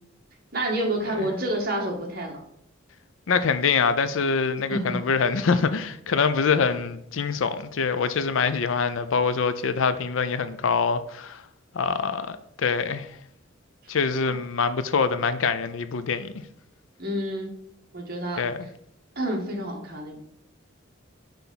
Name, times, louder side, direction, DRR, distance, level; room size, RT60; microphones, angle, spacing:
voice 1, 0.5-2.4 4.7-5.0 17.0-17.5 17.9-18.5 19.1-20.2, right 1 dB, 45° right, 1.6 m, -28 dB
voice 2, 3.3-11.4 11.7-13.1 13.9-16.3 18.4-18.7, left 5 dB, 75° left, 0.5 m, -24 dB
5.9 x 3.5 x 5.5 m
head